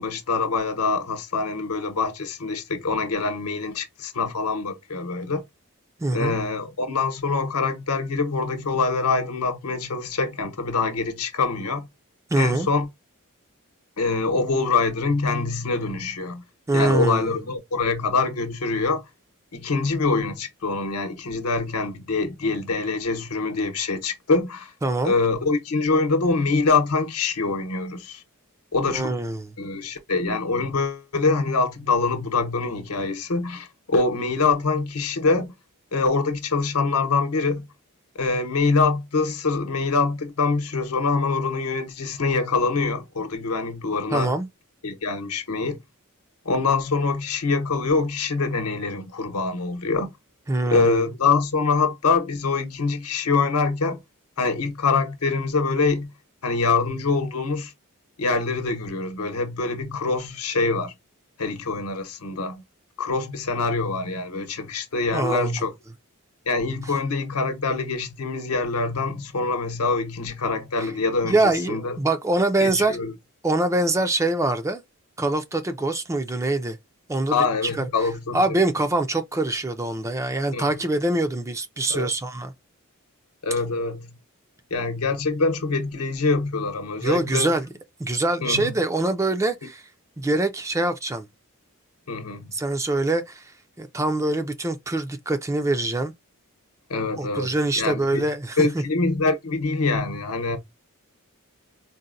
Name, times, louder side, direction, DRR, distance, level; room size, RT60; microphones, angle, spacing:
voice 1, 0.0-5.4 6.1-11.9 12.4-12.9 14.0-16.4 16.7-19.0 19.5-24.7 25.0-28.2 28.7-29.1 29.6-35.5 35.9-37.7 38.1-44.3 44.8-45.8 46.4-50.1 50.7-54.0 54.4-56.1 56.4-57.7 58.2-60.9 61.4-62.6 63.0-65.7 66.5-72.0 72.6-73.1 77.3-78.4 80.5-80.7 81.9-82.1 83.4-84.2 84.7-87.5 88.4-88.7 92.1-92.5 96.9-98.3 98.6-100.6, left 4 dB, 75° left, 0.9 m, -24 dB
voice 2, 6.0-6.4 12.3-12.7 16.7-17.3 24.8-25.2 28.9-29.5 44.1-44.5 50.5-51.1 65.1-65.6 70.8-70.9 71.2-73.0 73.4-74.8 75.2-76.8 77.1-77.4 77.8-77.9 78.3-82.5 87.0-87.7 88.0-89.8 90.2-91.2 92.5-93.5 93.8-96.1 97.2-98.7, right 2 dB, 15° right, 0.4 m, -24 dB
4.0 x 2.1 x 2.5 m
head